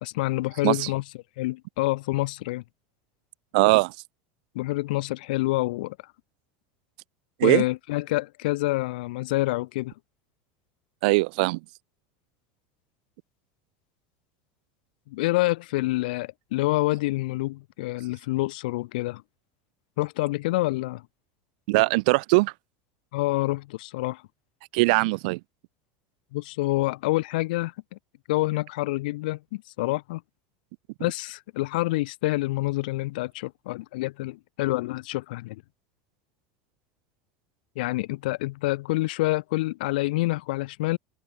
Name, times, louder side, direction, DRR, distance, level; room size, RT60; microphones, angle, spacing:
voice 1, 0.0-1.0 1.4-2.6 4.5-6.0 7.4-9.9 15.1-19.2 20.0-21.0 23.1-24.2 26.3-27.7 28.3-30.2 31.0-35.6 37.7-41.0, left 20 dB, 80° left, 3.0 m, -27 dB
voice 2, 3.5-3.9 7.4-7.6 11.0-11.6 21.7-22.5 24.7-25.4, right 26 dB, 75° right, 4.3 m, -21 dB
supercardioid pair, 110°, 5 cm